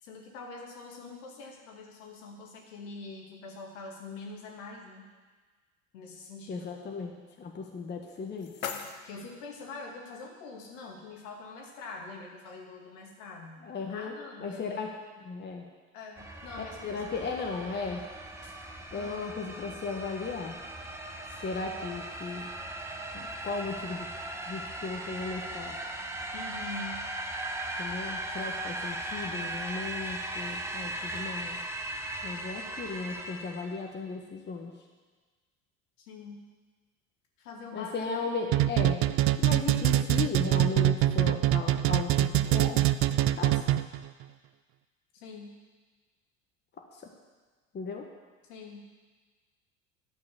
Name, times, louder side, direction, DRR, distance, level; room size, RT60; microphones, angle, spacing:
voice 1, 0.0-5.1 5.9-6.7 9.0-13.6 13.9-14.8 15.9-17.4 18.4-18.5 18.9-19.2 26.3-27.1 36.0-36.4 37.4-38.7 45.1-45.5 48.5-48.9, left 3 dB, 65° left, 0 dB, 2.3 m, -44 dB
voice 2, 6.5-8.5 13.6-14.9 15.2-15.6 16.8-18.0 18.9-20.6 21.4-22.5 23.1-24.1 24.5-25.8 27.8-31.6 32.2-34.7 37.7-39.0 39.4-42.9 43.4-43.6 46.8-47.1 47.7-48.1, left 4 dB, 25° left, 2 dB, 1.3 m, -36 dB
sound 1, 7.9-9.9, left 6 dB, 80° left, 1.0 m, -41 dB
sound 2, 16.2-33.9, right 1 dB, 5° right, 1.2 m, -38 dB
sound 3, 38.5-44.0, right 13 dB, 35° right, 0.4 m, -24 dB
11.0 x 6.3 x 7.2 m, 1.4 s
figure-of-eight pair, 70°, 40 cm